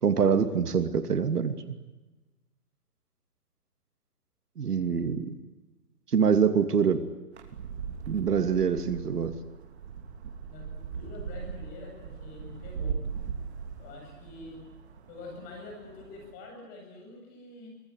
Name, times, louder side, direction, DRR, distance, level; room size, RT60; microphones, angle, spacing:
voice 1, 0.0-1.6 4.6-5.4 6.1-7.0 8.1-9.3, right 6 dB, 70° right, 9 dB, 2.8 m, -25 dB
sound 1, 7.3-16.3, right 6 dB, 40° right, 3.1 m, -39 dB
voice 2, 10.5-13.0 13.8-14.6 15.1-17.7, left 3 dB, 20° left, 2 dB, 7.9 m, -46 dB
25.5 x 19.0 x 9.9 m, 1.1 s
hypercardioid pair, 160°, 48 cm